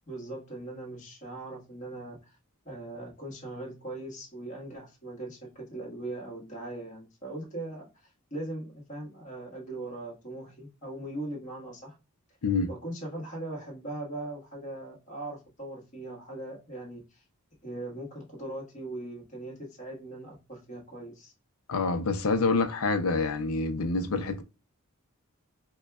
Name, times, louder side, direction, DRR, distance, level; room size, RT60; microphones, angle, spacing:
voice 1, 0.1-2.3 2.6-11.9 12.7-17.2 17.6-21.3, right 2 dB, 35° left, 1.5 m, -40 dB
voice 2, 21.7-24.4, left 3 dB, 75° left, 0.6 m, -27 dB
4.9 x 2.3 x 2.3 m
head